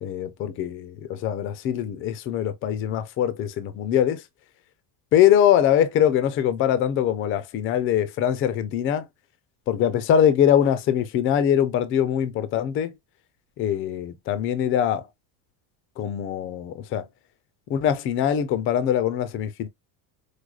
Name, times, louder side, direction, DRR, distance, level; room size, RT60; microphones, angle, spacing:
voice 1, 0.0-4.2 5.1-9.1 9.7-12.9 13.6-15.1 16.0-17.1 17.7-19.7, left 10 dB, 30° left, 0.3 m, -22 dB
4.7 x 2.1 x 2.3 m
cardioid pair, 175°, 44 cm